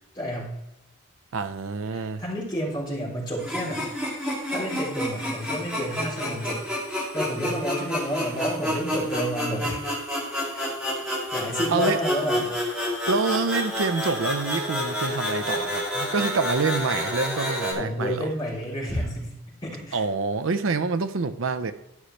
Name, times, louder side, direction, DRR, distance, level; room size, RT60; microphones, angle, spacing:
voice 1, 0.1-0.5 1.9-3.9 4.5-6.6 7.1-9.9 10.5-10.6 11.3-12.5 17.8-20.0, equal, 20° left, 3.3 m, -30 dB
voice 2, 1.3-2.2 11.7-12.0 13.1-18.3 19.9-21.7, right 4 dB, 60° right, 0.5 m, -26 dB
sound 1, 3.4-17.7, equal, 5° right, 2.2 m, -29 dB
12.5 x 6.4 x 3.2 m
head